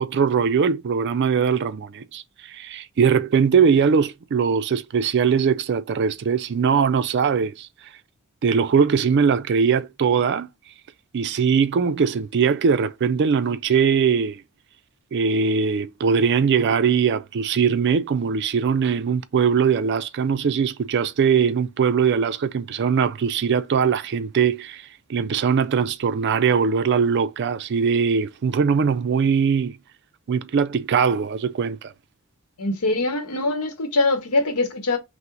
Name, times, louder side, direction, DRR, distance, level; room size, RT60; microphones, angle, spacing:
voice 1, 0.0-7.7 8.4-10.5 11.1-14.4 15.1-24.8 25.1-29.7 30.3-31.9, right 6 dB, 50° right, 0.4 m, -21 dB
voice 2, 32.6-35.0, left 2 dB, 90° left, 0.9 m, -23 dB
5.6 x 2.0 x 3.7 m
head